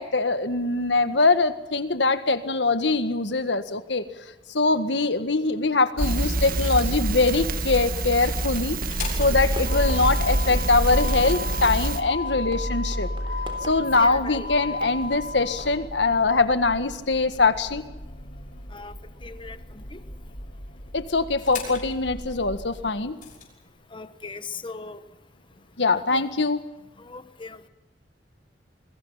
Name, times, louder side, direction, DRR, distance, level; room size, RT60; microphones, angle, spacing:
voice 1, 0.0-4.0 4.5-8.8 9.1-13.1 13.6-17.8 20.9-23.2 25.8-26.6, left 3 dB, 75° left, 10 dB, 1.8 m, -23 dB
Crackle, 6.0-12.0, right 2 dB, 55° right, 1.7 m, -26 dB
Motor vehicle (road), 8.9-23.4, left 1 dB, 50° left, 6.2 m, -34 dB
sound 1, 9.1-15.8, right 1 dB, 30° right, 3.7 m, -45 dB
voice 2, 14.0-14.8 18.7-20.0 23.9-25.0 26.1-26.3 27.0-27.7, left 4 dB, 30° left, 12 dB, 1.1 m, -39 dB
28.5 x 21.0 x 5.8 m, 1.0 s
head